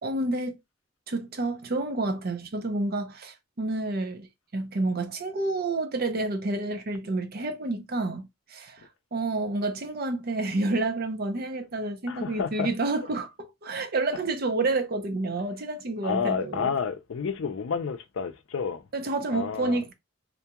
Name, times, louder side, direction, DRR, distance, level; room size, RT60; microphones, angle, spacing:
voice 1, 0.0-0.6 1.1-4.3 4.5-8.8 9.1-16.7 18.9-19.9, right 2 dB, 50° right, 0.6 m, -29 dB
voice 2, 12.1-12.7 16.0-18.8 19.3-19.8, left 6 dB, 80° left, 0.4 m, -30 dB
2.6 x 2.3 x 2.9 m
head